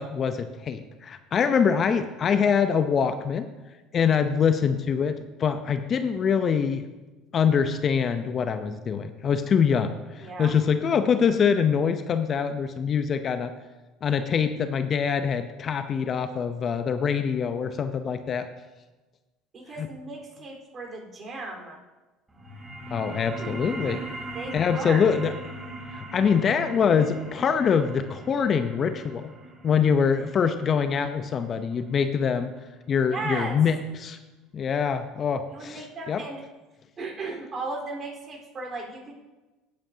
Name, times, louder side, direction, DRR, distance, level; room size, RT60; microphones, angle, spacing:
voice 1, 0.0-3.5 3.9-6.8 7.3-13.5 14.0-18.5 19.8-19.9 22.9-24.0 24.5-25.3 25.9-29.3 29.6-32.5 32.9-34.2 34.5-36.2, left 6 dB, 45° left, 9 dB, 0.7 m, -24 dB
voice 2, 10.2-10.5 19.5-21.8 23.4-23.5 23.8-24.1 24.3-25.1 33.1-33.6 35.5-36.4 37.0-39.1, right 3 dB, 40° right, 0 dB, 4.2 m, -36 dB
sound 1, 22.3-33.4, right 2 dB, 10° right, 4.1 m, -41 dB
16.5 x 8.7 x 2.8 m, 1.2 s
hypercardioid pair, 70°, 0 cm